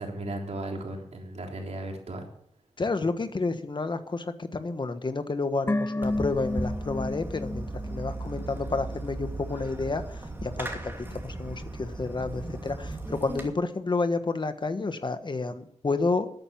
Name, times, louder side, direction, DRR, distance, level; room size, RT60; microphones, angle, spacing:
voice 1, 0.0-2.3, right 2 dB, 65° right, 1 dB, 3.5 m, -35 dB
voice 2, 2.8-16.3, left 3 dB, 40° left, 10 dB, 1.2 m, -30 dB
sound 1, 5.7-9.0 9.2-9.3, left 2 dB, 20° left, 0.8 m, -32 dB
Fireworks, 6.0-13.5, right 2 dB, 15° right, 2.6 m, -37 dB
13.5 x 8.9 x 7.1 m, 0.67 s
wide cardioid pair, 85°, 12 cm